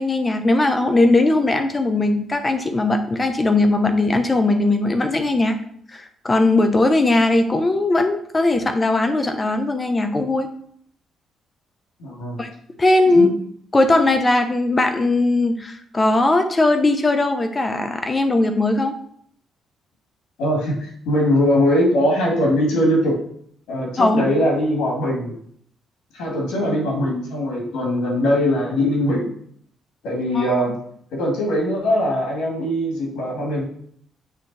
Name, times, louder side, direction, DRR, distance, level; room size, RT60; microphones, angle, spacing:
voice 1, 0.0-5.6 5.9-10.5 12.4-12.5 12.8-13.3 13.7-18.9 24.0-24.2 30.3-30.5, left 2 dB, 25° left, 6 dB, 0.9 m, -19 dB
voice 2, 12.0-12.4 13.1-13.3 20.4-23.2 23.7-25.3 26.1-29.3 30.0-30.8 31.1-33.7, equal, 90° left, -2 dB, 2.1 m, -21 dB
8.1 x 3.0 x 4.2 m, 0.64 s
cardioid pair, 90°, 0 cm